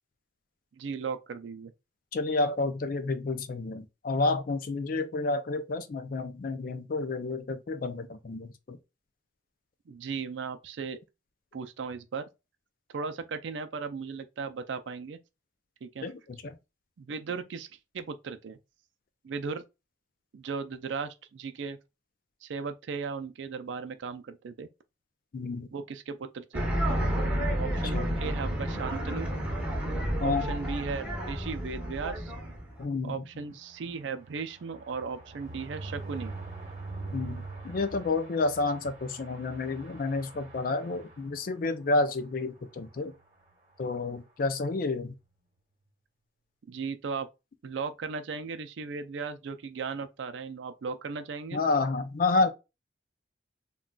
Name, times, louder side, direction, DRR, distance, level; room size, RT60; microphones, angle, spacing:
voice 1, 0.7-1.7 9.9-11.0 11.5-12.2 12.9-15.2 15.8-16.1 17.0-17.7 17.9-18.6 19.2-19.6 20.3-21.8 22.4-24.7 25.7-26.7 27.5-29.3 30.2-32.3 33.0-36.3 46.7-47.3 47.6-51.6, right 5 dB, 80° right, 0.4 m, -36 dB
voice 2, 2.1-8.8 16.0-16.6 25.3-25.7 27.9-28.2 30.2-30.5 32.8-33.3 37.1-43.1 43.8-45.1 51.5-52.5, left 3 dB, 50° left, 0.4 m, -30 dB
sound 1, 26.5-32.8, equal, 10° right, 1.1 m, -31 dB
sound 2, 32.9-41.7 42.1-42.3 42.6-42.7 42.9-43.2, right 3 dB, 40° right, 1.1 m, -43 dB
3.8 x 2.3 x 2.2 m
head